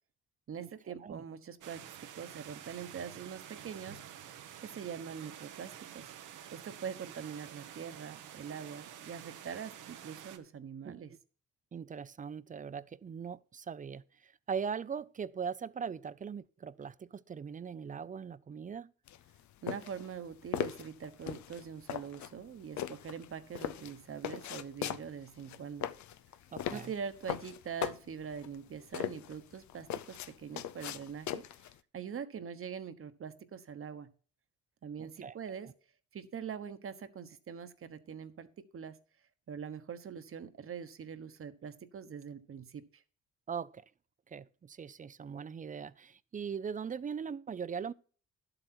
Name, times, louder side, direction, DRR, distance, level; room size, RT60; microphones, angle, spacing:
voice 1, 0.5-6.1 6.5-11.1 19.6-25.9 26.7-31.7 31.9-34.1 34.8-35.7 36.1-39.0 39.5-43.0, right 7 dB, 45° right, 1.2 m, -43 dB
sound 1, 1.6-10.4, right 10 dB, 85° right, 1.1 m, -49 dB
voice 2, 11.7-18.9 26.5-26.9 35.0-35.4 35.6-35.7 43.5-43.9 44.3-47.9, right 6 dB, 25° right, 0.5 m, -40 dB
sound 2, 19.1-31.8, left 10 dB, 70° left, 0.7 m, -39 dB
11.5 x 8.0 x 4.4 m
cardioid pair, 90°, 30 cm